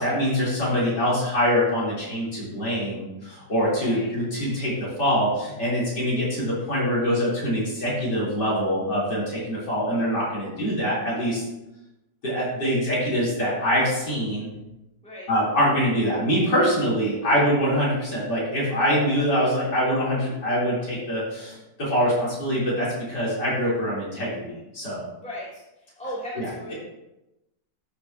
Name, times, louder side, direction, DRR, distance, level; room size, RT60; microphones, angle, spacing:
voice 1, 0.0-11.4 12.2-14.5 15.3-25.0 26.4-26.7, equal, 65° left, -8 dB, 4.4 m, -24 dB
voice 2, 25.2-25.6 26.0-26.7, equal, 5° left, -7 dB, 2.8 m, -36 dB
13.0 x 6.6 x 2.9 m, 0.93 s
omnidirectional pair, 2.0 m